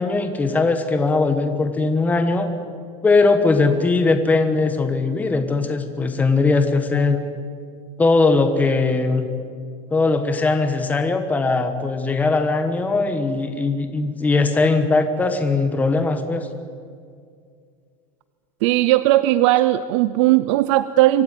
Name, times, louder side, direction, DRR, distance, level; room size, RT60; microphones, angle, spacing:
voice 1, 0.0-2.5 3.0-7.2 8.0-9.3 9.9-16.5, left 3 dB, 10° left, 7 dB, 1.3 m, -20 dB
voice 2, 18.6-21.2, right 15 dB, 55° right, 14 dB, 0.6 m, -17 dB
25.0 x 15.0 x 9.6 m, 2.2 s
supercardioid pair, 170°, 18 cm